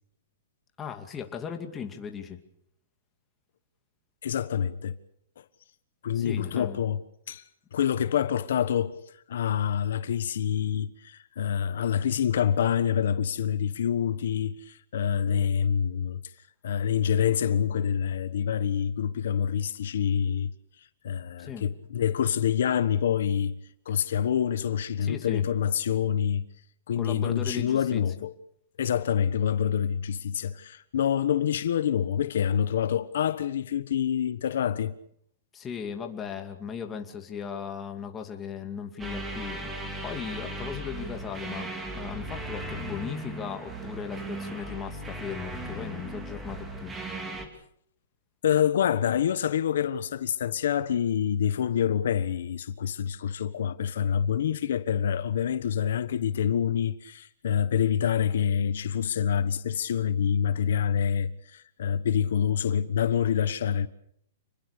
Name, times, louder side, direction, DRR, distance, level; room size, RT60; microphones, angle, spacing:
voice 1, 0.8-2.4 6.1-6.8 21.4-21.7 25.0-25.4 27.0-28.0 35.5-39.7 40.0-46.9, left 7 dB, 15° left, 2.5 m, -37 dB
voice 2, 4.2-5.0 5.4-5.5 6.0-7.0 7.3-7.4 7.7-9.0 9.3-16.2 16.6-20.5 20.8-23.6 23.8-26.4 26.9-28.3 28.8-34.9 48.4-63.9, left 8 dB, 70° left, 1.3 m, -26 dB
sound 1, 39.0-47.5, right 1 dB, 10° right, 3.2 m, -37 dB
28.0 x 21.5 x 6.8 m
hypercardioid pair, 160°, 0 cm